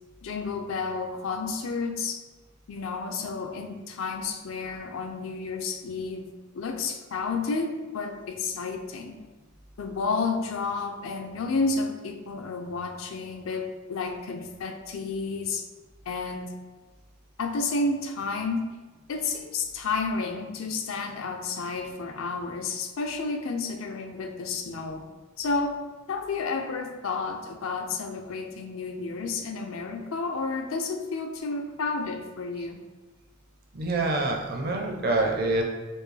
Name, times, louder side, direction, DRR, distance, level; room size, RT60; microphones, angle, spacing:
voice 1, 0.2-2.2 2.7-9.2 9.8-15.7 16.1-16.5 17.4-18.7 19.1-25.0 25.4-25.8 26.1-32.8, left 4 dB, 70° left, 5 dB, 0.5 m, -31 dB
voice 2, 33.7-35.6, right 2 dB, 50° right, 1 dB, 0.6 m, -26 dB
4.4 x 2.7 x 3.2 m, 1.2 s
head